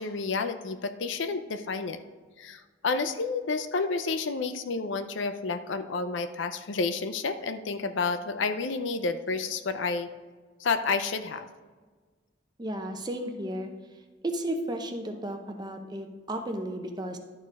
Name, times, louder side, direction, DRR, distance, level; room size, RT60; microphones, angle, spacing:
voice 1, 0.0-2.0 2.4-10.1 10.6-11.5, left 4 dB, 70° left, 9 dB, 0.5 m, -30 dB
voice 2, 12.6-13.7 14.2-17.2, right 1 dB, 20° right, 5 dB, 0.7 m, -33 dB
12.0 x 4.5 x 4.7 m, 1.4 s
head